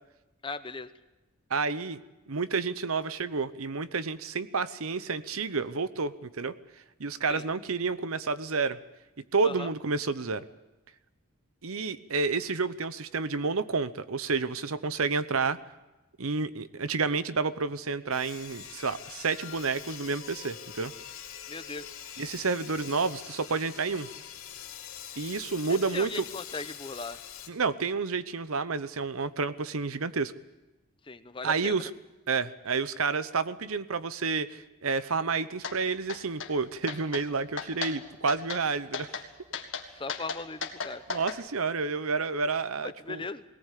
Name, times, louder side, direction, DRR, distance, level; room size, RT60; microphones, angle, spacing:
voice 1, 0.4-0.9 7.3-7.4 9.4-9.7 21.5-21.9 25.7-27.2 31.0-31.9 39.9-41.0 42.8-43.4, left 3 dB, 25° left, 11 dB, 0.8 m, -38 dB
voice 2, 1.5-2.0 2.3-6.5 7.0-8.8 9.3-10.4 11.6-15.6 16.2-20.9 22.2-24.1 25.2-26.2 27.5-30.3 31.4-31.9 32.3-39.1 41.1-43.2, right 4 dB, 80° right, 14 dB, 0.9 m, -30 dB
Sawing, 18.1-27.5, left 9 dB, 80° left, 3.0 m, -44 dB
sound 1, 35.6-35.8 36.1-36.5 36.9-37.2 37.6-38.0 38.3-38.6 38.9-39.3 39.5-41.4, left 5 dB, 60° left, 1.9 m, -35 dB
20.5 x 18.5 x 8.4 m, 1.0 s
head